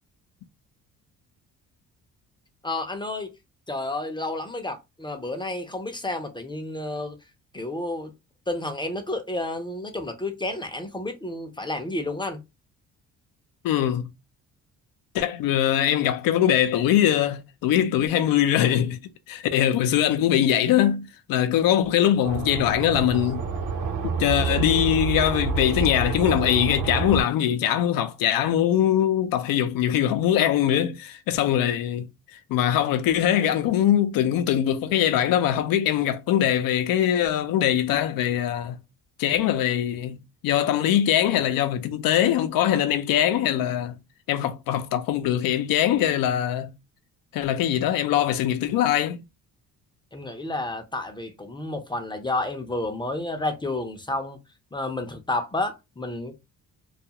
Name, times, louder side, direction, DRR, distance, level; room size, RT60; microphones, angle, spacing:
voice 1, 2.6-3.3 3.7-7.2 7.5-8.1 8.5-12.4 50.1-54.4 54.7-56.4, left 2 dB, 15° left, 0.5 m, -30 dB
voice 2, 13.6-14.1 15.1-19.0 19.3-23.5 24.0-32.1 32.5-38.8 39.2-40.2 40.4-44.0 44.3-46.7 47.3-49.2, left 11 dB, 80° left, 0.6 m, -22 dB
sound 1, 22.2-27.2, right 5 dB, 60° right, 0.9 m, -28 dB
2.4 x 2.3 x 2.8 m
cardioid pair, 90°, 34 cm